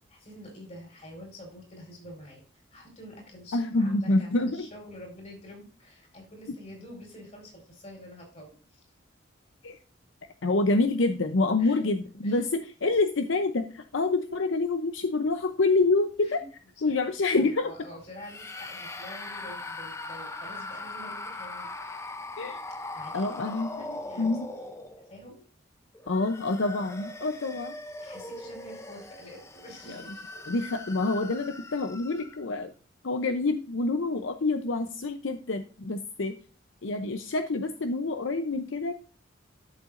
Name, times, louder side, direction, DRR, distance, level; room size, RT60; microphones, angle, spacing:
voice 1, 0.1-2.4 2.7-8.8 11.6-11.8 12.2-12.4 16.2-16.5 16.9-17.0 17.4-22.2 22.9-23.4 23.8-24.4 25.0-25.4 28.0-30.4, left 1 dB, 35° left, 0 dB, 5.0 m, -47 dB
voice 2, 3.5-4.7 9.6-9.8 10.4-16.4 16.8-17.7 22.4-22.6 23.1-24.5 26.1-27.8 30.5-32.7 33.0-36.4 36.8-38.9, left 3 dB, 70° left, 8 dB, 0.7 m, -27 dB
sound 1, 18.2-25.2 25.9-32.5, left 2 dB, 15° left, 0.6 m, -40 dB
13.0 x 7.1 x 2.6 m, 0.40 s
head